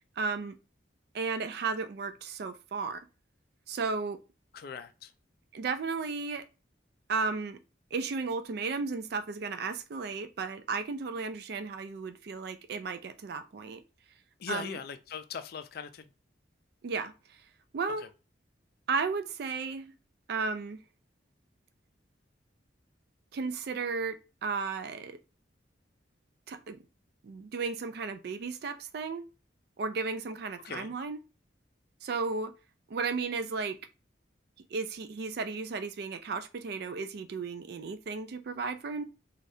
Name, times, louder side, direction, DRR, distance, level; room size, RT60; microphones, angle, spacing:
voice 1, 0.2-0.6 1.1-3.1 3.7-4.2 5.5-6.5 7.1-7.6 7.9-13.8 14.5-14.8 16.8-17.1 17.7-18.1 18.9-19.9 20.3-20.8 23.3-25.2 26.5-26.8 27.2-29.3 29.8-31.2 32.0-32.5 32.9-33.8 34.7-39.0, right 4 dB, 55° right, 0.3 m, -34 dB
voice 2, 4.5-5.1 14.4-16.1 18.0-18.1 30.6-30.9, left 6 dB, 50° left, 0.3 m, -40 dB
3.3 x 2.3 x 2.7 m
head